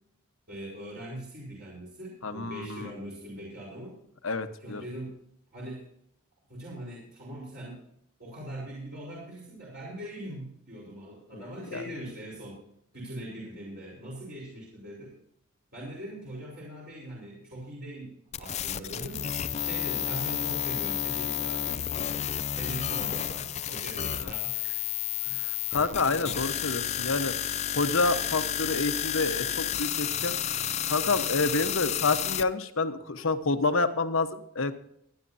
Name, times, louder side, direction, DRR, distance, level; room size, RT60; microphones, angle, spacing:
voice 1, 0.5-4.0 4.6-5.2 5.5-5.8 6.5-7.8 8.2-12.6 12.9-15.2 15.7-19.3 19.6-24.8 25.2-25.5, right 1 dB, 45° right, -6 dB, 4.7 m, -41 dB
voice 2, 2.2-2.9 4.2-4.8 11.3-11.4 11.7-11.8 24.2-24.3 25.7-27.3 27.7-34.7, left 3 dB, 70° left, 9 dB, 1.1 m, -28 dB
sound 1, 18.3-32.4, left 10 dB, 30° left, 0.4 m, -31 dB
25.0 x 9.9 x 2.8 m, 0.72 s
head